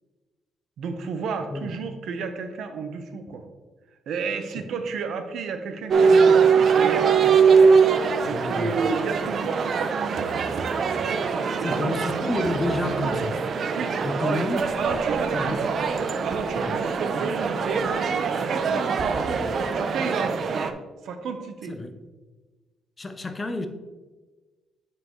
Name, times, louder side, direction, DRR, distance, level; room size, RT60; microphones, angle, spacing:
voice 1, 0.8-3.5 4.1-7.3 8.2-10.6 11.3-11.7 13.7-14.0 14.3-14.4 14.8-15.8 16.2-19.4 19.7-20.4 21.0-21.8, right 5 dB, 70° right, 7 dB, 0.8 m, -32 dB
sound 1, 5.9-20.7, right 5 dB, 50° right, 0.5 m, -22 dB
voice 2, 8.3-8.8 11.6-13.4 14.0-14.6 15.3-15.7 16.6-16.7 19.4-19.5 21.7-21.9 23.0-23.7, left 2 dB, 25° left, 8 dB, 0.6 m, -30 dB
7.6 x 5.7 x 3.1 m, 1.3 s
cardioid pair, 110°, 0 cm